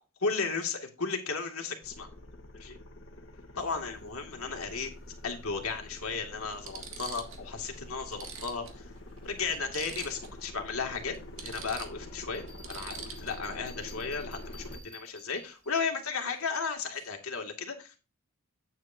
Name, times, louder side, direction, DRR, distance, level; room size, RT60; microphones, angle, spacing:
voice 1, 0.2-2.1 2.5-2.8 3.6-4.9 5.2-8.9 9.2-18.0, left 5 dB, 80° left, 2 dB, 2.2 m, -35 dB
sound 1, 1.8-14.8, left 1 dB, 60° left, 1.4 m, -46 dB
sound 2, 3.6-3.8 5.3-5.4 6.0-6.1 6.5-7.5 7.8-7.9 8.1-10.4 10.7-10.8 11.1-13.6 16.2-16.4 16.7-17.1, right 6 dB, 70° right, 1.9 m, -45 dB
Bell, 12.3-15.7, left 1 dB, 5° left, 1.4 m, -53 dB
9.3 x 8.2 x 2.7 m, 0.32 s
head